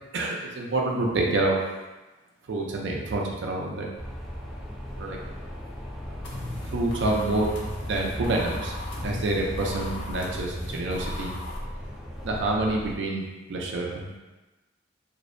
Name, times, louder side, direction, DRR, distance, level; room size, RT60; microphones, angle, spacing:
voice 1, 0.1-1.6 2.5-3.9 5.0-5.2 6.7-8.7 9.0-11.3 12.2-13.2 13.5-14.2, right 2 dB, 65° right, -1 dB, 0.4 m, -27 dB
sound 1, 4.0-13.0, equal, ahead, 0.3 m, -37 dB
sound 2, 6.2-11.6, left 2 dB, 70° left, 0.4 m, -39 dB
2.5 x 2.0 x 2.5 m, 1.1 s
head